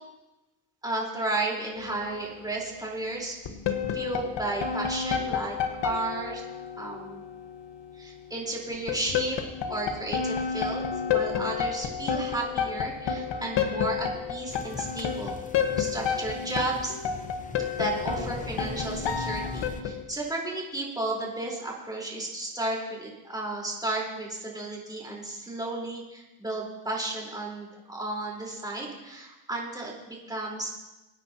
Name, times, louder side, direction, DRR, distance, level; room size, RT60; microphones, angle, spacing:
voice 1, 0.8-3.4 3.9-5.6 5.8-6.4 6.8-7.2 7.9-9.4 9.7-10.8 11.1-15.4 15.8-17.0 17.7-30.7, right 2 dB, 10° right, -3 dB, 4.0 m, -33 dB
sound 1, 1.7-2.4 3.5-7.8 8.7-20.0, left 7 dB, 70° left, 1.4 m, -30 dB
sound 2, 14.5-19.8, left 3 dB, 15° left, 0.7 m, -41 dB
24.0 x 9.7 x 2.9 m, 1.1 s
cardioid pair, 115°, 45 cm